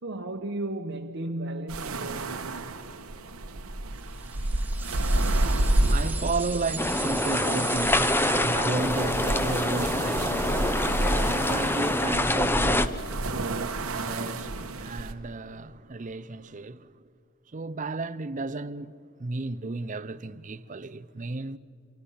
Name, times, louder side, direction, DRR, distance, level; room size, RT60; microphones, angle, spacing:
voice 1, 0.0-2.7, right 1 dB, 55° right, 1.1 m, -34 dB
sound 1, 1.7-15.1, right 1 dB, 85° right, 1.4 m, -30 dB
sound 2, 4.2-9.0, right 4 dB, 10° right, 1.5 m, -37 dB
voice 2, 4.9-17.0 17.5-18.9 19.2-21.6, right 3 dB, 35° right, 0.6 m, -34 dB
sound 3, 6.8-12.9, left 1 dB, 10° left, 0.7 m, -26 dB
28.0 x 24.5 x 5.7 m
head